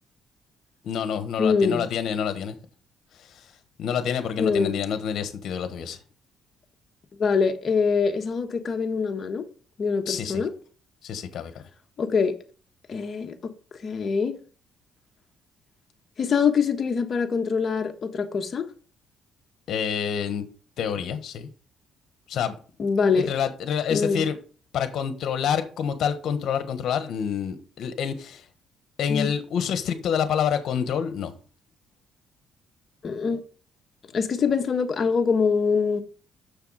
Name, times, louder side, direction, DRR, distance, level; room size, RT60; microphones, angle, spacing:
voice 1, 0.8-2.6 3.2-3.5 3.8-6.0 10.1-10.4 11.0-11.6 19.7-20.5 20.8-21.5 22.3-22.5 23.1-24.4 24.7-28.4 29.0-31.3, left 7 dB, 65° left, 1.3 m, -27 dB
voice 2, 1.4-1.8 4.4-4.7 7.2-9.5 9.8-10.5 12.0-12.3 12.9-13.3 13.8-14.4 16.2-18.7 22.8-23.3 23.9-24.2 29.1-29.3 33.0-33.4 34.1-36.0, left 5 dB, 45° left, 1.3 m, -24 dB
6.9 x 6.7 x 4.9 m
cardioid pair, 110°, 0 cm